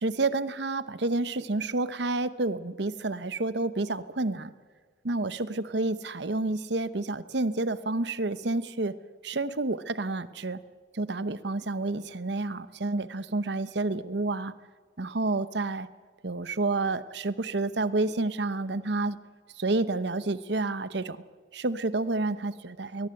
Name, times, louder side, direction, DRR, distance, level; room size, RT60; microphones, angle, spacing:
voice 1, 0.0-4.5 5.0-9.0 9.2-10.6 10.9-14.5 15.0-15.9 16.2-19.2 19.6-21.2 21.5-23.1, right 2 dB, 65° right, 15 dB, 0.9 m, -29 dB
21.0 x 19.5 x 9.7 m, 1.5 s
head